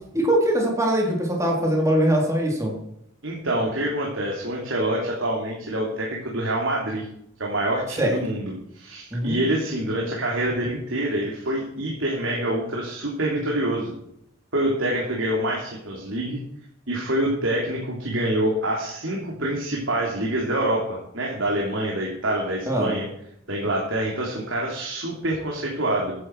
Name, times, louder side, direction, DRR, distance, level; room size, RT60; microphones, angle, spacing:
voice 1, 0.1-2.7 8.0-8.1 9.1-9.4 22.7-22.9, right 1 dB, 15° right, -1 dB, 4.1 m, -22 dB
voice 2, 3.2-7.0 7.4-13.9 14.5-16.4 16.9-23.1 23.5-26.1, right 1 dB, 80° right, -2 dB, 3.3 m, -26 dB
14.5 x 11.0 x 4.8 m, 0.75 s
head